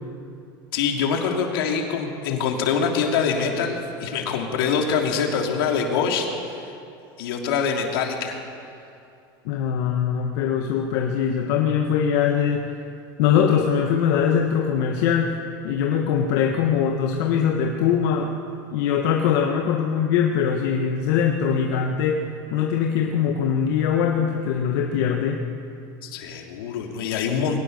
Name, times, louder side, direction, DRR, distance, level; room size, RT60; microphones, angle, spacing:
voice 1, 0.7-6.3 7.2-8.4 26.0-27.6, left 6 dB, 85° left, 2 dB, 3.2 m, -24 dB
voice 2, 9.4-12.7 13.2-15.4 15.6-18.3 18.7-25.4, left 7 dB, 70° left, 1 dB, 1.6 m, -22 dB
22.5 x 18.0 x 6.7 m, 2.5 s
supercardioid pair, 125°, 12 cm